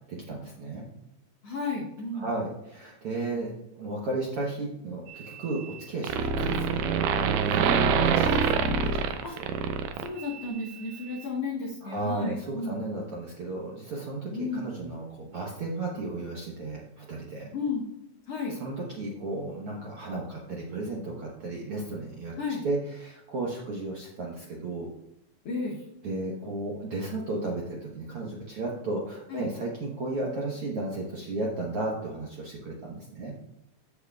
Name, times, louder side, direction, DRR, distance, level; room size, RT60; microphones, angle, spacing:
voice 1, 0.3-0.9 2.1-6.9 7.4-9.5 11.8-17.5 18.5-22.3 22.6-24.9 26.0-33.3, right 2 dB, 60° right, -3 dB, 1.5 m, -34 dB
voice 2, 1.4-2.3 8.2-8.4 9.2-9.4 10.0-12.8 14.3-14.6 17.5-17.8 18.3-18.5 22.4-22.6 25.4-25.8 29.3-29.4, left 3 dB, 65° left, -3 dB, 1.7 m, -33 dB
sound 1, 5.1-5.8 6.0-10.5, right 6 dB, 80° right, 2.1 m, -25 dB
14.0 x 6.4 x 2.4 m, 0.81 s
omnidirectional pair, 4.0 m